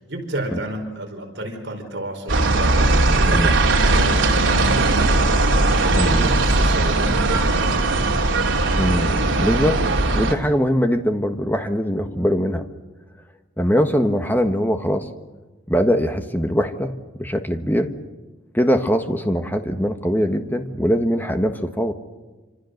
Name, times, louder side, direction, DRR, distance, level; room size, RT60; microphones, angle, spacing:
voice 1, 0.0-5.5 6.0-8.2, right 1 dB, 60° right, 3 dB, 5.1 m, -32 dB
sound 1, 2.3-10.3, right 2 dB, 80° right, 3.0 m, -18 dB
voice 2, 5.9-6.2 8.7-9.8 10.1-12.6 13.6-15.1 15.7-17.9 18.5-21.9, equal, 10° left, 6 dB, 1.5 m, -21 dB
27.0 x 26.5 x 6.6 m, 1.2 s
head